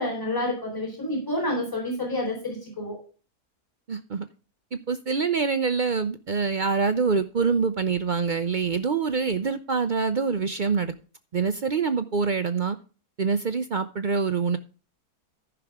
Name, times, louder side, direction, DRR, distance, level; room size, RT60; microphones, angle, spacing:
voice 1, 0.0-3.0, left 1 dB, 10° left, 0 dB, 4.2 m, -29 dB
voice 2, 3.9-4.2 4.7-10.9 11.3-12.8 13.2-14.6, right 5 dB, 55° right, 10 dB, 0.5 m, -25 dB
14.5 x 6.0 x 3.5 m, 0.36 s
omnidirectional pair, 1.7 m